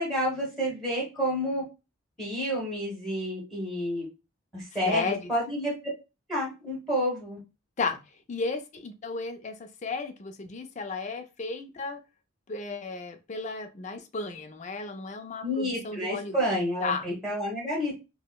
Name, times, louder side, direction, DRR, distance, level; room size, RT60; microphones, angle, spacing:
voice 1, 0.0-1.6 2.2-4.0 4.5-5.7 6.3-7.4 15.4-18.0, equal, ahead, 1.3 m, -29 dB
voice 2, 4.9-5.3 7.8-8.0 8.3-12.0 12.5-16.5 16.8-17.1, left 4 dB, 35° left, 0.4 m, -34 dB
4.8 x 2.1 x 2.2 m
head